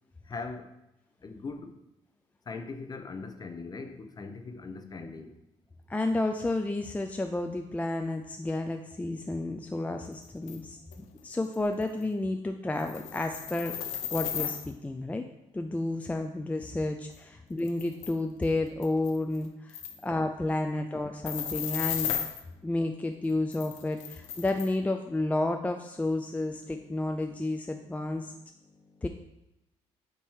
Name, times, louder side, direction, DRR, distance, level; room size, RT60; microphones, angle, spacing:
voice 1, 0.3-0.7 1.2-1.7 2.5-5.3 22.5-22.7 26.2-27.3 28.6-29.1, left 4 dB, 35° left, 6 dB, 0.8 m, -42 dB
voice 2, 5.9-10.8 11.2-13.7 14.1-15.2 15.5-22.1 22.6-28.3 29.0-29.1, left 2 dB, 10° left, 5 dB, 0.5 m, -31 dB
sound 1, 10.5-10.6 10.9-11.0 11.5-11.6 11.8-12.0 12.7-14.7 17.1-17.2 17.6-18.1 18.4-18.5 18.8-19.4 19.7-20.0 21.2-22.4 23.5-24.7, left 9 dB, 80° left, 0.7 m, -34 dB
8.8 x 3.0 x 4.7 m, 0.89 s
cardioid pair, 85°, 12 cm